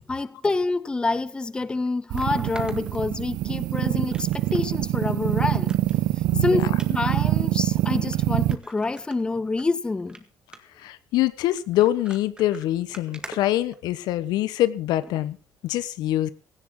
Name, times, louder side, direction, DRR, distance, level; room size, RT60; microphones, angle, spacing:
voice 1, 0.1-5.8 6.4-10.2, left 3 dB, 15° left, 0.7 m, -27 dB
sound 1, 1.1-1.2 2.2-3.6 4.1-4.7 5.0-5.1 5.5-6.0 6.7-6.9 7.6-7.7 8.1-8.2 8.5-9.6 10.0-10.2 10.5-10.8 11.6-14.2 15.0-15.2 15.8-15.9, right 2 dB, 15° right, 1.8 m, -44 dB
sound 2, 2.1-8.6, right 15 dB, 85° right, 1.0 m, -24 dB
voice 2, 6.3-6.7 10.8-15.4 15.6-16.3, left 14 dB, 85° left, 1.2 m, -24 dB
17.0 x 15.5 x 3.9 m
cardioid pair, 150°, 7 cm